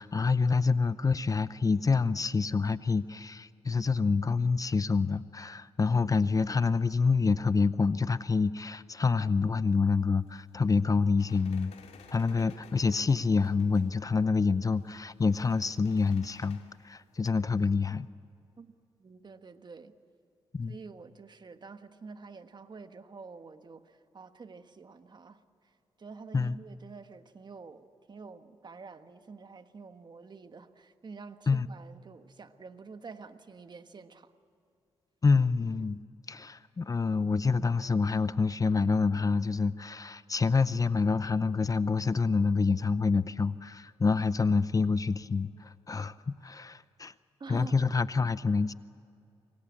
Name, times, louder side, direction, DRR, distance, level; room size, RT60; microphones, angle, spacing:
voice 1, 0.0-11.7 12.1-18.1 20.5-20.7 26.3-26.5 31.5-31.7 35.2-36.0 36.3-47.1 47.5-48.7, left 4 dB, 35° left, 15 dB, 0.6 m, -27 dB
sound 1, 9.7-17.3, left 6 dB, 90° left, 2.7 m, -57 dB
voice 2, 19.0-19.9 20.7-25.7 26.0-34.3 47.4-47.9, right 4 dB, 45° right, 9 dB, 1.4 m, -48 dB
26.0 x 22.5 x 8.5 m, 2.5 s
cardioid pair, 70°, 11 cm